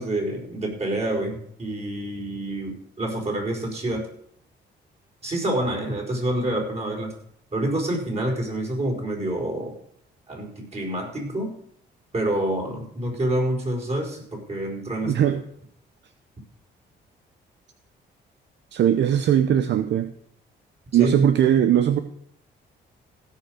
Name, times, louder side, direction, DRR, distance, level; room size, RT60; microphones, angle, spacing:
voice 1, 0.0-4.0 5.2-7.1 7.5-9.7 10.3-11.5 12.1-15.4 20.9-21.1, right 1 dB, 30° right, -1 dB, 4.8 m, -27 dB
voice 2, 15.0-15.4 18.7-20.1 20.9-22.0, right 10 dB, 65° right, 10 dB, 0.7 m, -19 dB
16.5 x 5.6 x 6.3 m, 0.67 s
cardioid pair, 90°, 20 cm